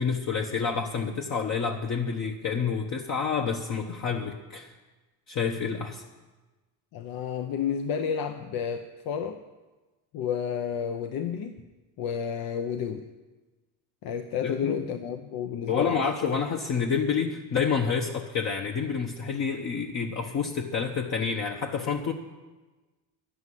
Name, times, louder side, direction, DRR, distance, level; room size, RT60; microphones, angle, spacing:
voice 1, 0.0-4.7 5.3-6.0 14.4-14.8 15.7-22.1, left 6 dB, 45° left, 2 dB, 1.1 m, -28 dB
voice 2, 6.9-9.4 10.1-11.6 12.0-13.1 14.0-16.0, left 7 dB, 65° left, 8 dB, 0.8 m, -31 dB
10.5 x 8.1 x 9.8 m, 1.2 s
cardioid pair, 105°, 38 cm